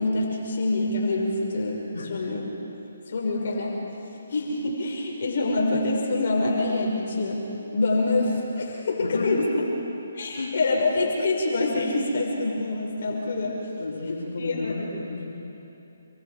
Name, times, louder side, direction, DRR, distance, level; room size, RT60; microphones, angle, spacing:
voice 1, 0.0-2.4 3.1-3.8 4.3-7.4 7.7-9.4 10.1-13.6 14.4-14.8, left 2 dB, 60° left, -1 dB, 5.2 m, -25 dB
voice 2, 9.0-9.7 10.4-10.6 13.8-15.3, left 2 dB, 80° left, -4 dB, 5.1 m, -31 dB
28.5 x 23.5 x 4.9 m, 2.9 s
hypercardioid pair, 150°, 0 cm